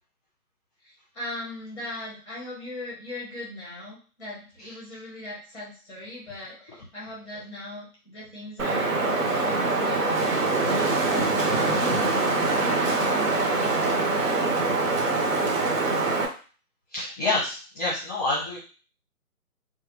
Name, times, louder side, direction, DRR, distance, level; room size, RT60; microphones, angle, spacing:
voice 1, 0.8-8.9 9.2-11.9 12.7-13.8, left 1 dB, ahead, -6 dB, 1.0 m, -39 dB
Wind, 8.6-16.3, right 3 dB, 60° right, 0.7 m, -24 dB
voice 2, 16.9-18.6, left 2 dB, 25° left, -6 dB, 0.8 m, -28 dB
2.7 x 2.3 x 3.0 m, 0.38 s
figure-of-eight pair, 155°, 46 cm